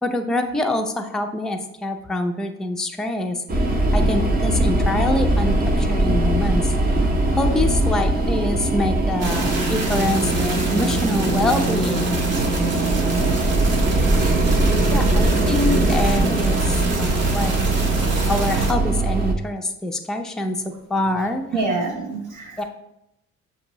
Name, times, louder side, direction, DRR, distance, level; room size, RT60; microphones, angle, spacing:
voice 1, 0.0-3.4 3.9-6.7 7.3-12.2 14.9-17.5 18.3-20.6 20.9-21.4 22.6-22.7, left 1 dB, ahead, 4 dB, 0.4 m, -25 dB
sound 1, 3.5-19.3, right 1 dB, 30° right, 0.7 m, -21 dB
sound 2, 9.2-18.7, right 3 dB, 55° right, 1.0 m, -25 dB
voice 2, 21.5-22.6, right 3 dB, 85° right, 2 dB, 1.0 m, -26 dB
6.3 x 2.7 x 3.0 m, 0.86 s
cardioid pair, 90°, 30 cm